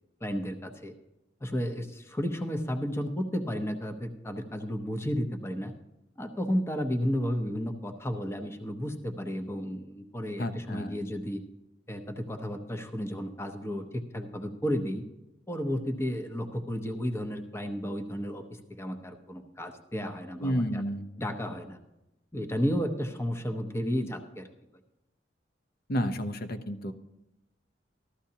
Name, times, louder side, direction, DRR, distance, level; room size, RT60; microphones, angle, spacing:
voice 1, 0.2-0.9 1.4-5.7 6.2-11.4 11.9-15.0 15.5-18.4 18.8-20.8 21.2-21.8 22.3-24.5, equal, 15° left, 6 dB, 0.8 m, -32 dB
voice 2, 10.4-11.0 20.4-21.1 25.9-26.9, equal, 55° left, 9 dB, 0.8 m, -31 dB
14.5 x 13.0 x 2.8 m, 0.95 s
head